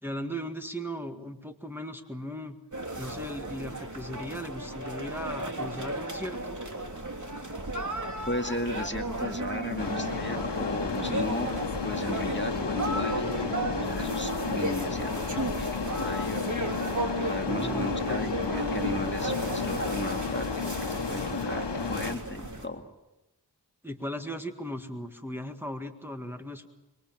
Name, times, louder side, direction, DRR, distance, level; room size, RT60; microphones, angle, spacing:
voice 1, 0.0-2.6 3.0-6.6 17.4-18.3 23.8-26.7, equal, 5° right, 4 dB, 1.9 m, -37 dB
sound 1, 2.7-22.7, right 2 dB, 45° right, 3.3 m, -34 dB
voice 2, 8.3-11.5 11.8-13.4 13.7-16.6 17.2-22.8, left 1 dB, 25° left, 4 dB, 2.1 m, -35 dB
sound 2, 9.8-22.2, left 5 dB, 80° left, 1.2 m, -32 dB
26.0 x 23.0 x 7.6 m, 0.97 s
wide cardioid pair, 50°, 41 cm